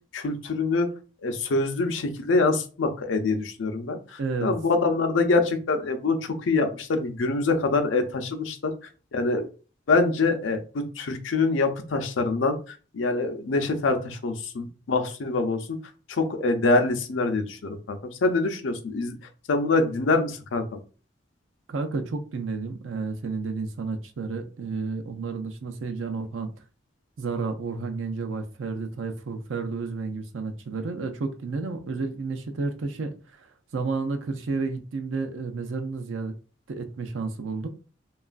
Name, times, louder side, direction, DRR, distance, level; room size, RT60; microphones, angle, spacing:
voice 1, 0.1-0.9 1.2-8.7 9.1-9.5 9.9-15.8 16.1-19.2 19.5-20.6, left 3 dB, 85° left, 0.5 m, -25 dB
voice 2, 4.2-4.5 21.7-26.5 27.2-33.5 33.7-36.3 36.7-37.7, right 4 dB, 90° right, 0.5 m, -31 dB
2.9 x 2.4 x 2.4 m
head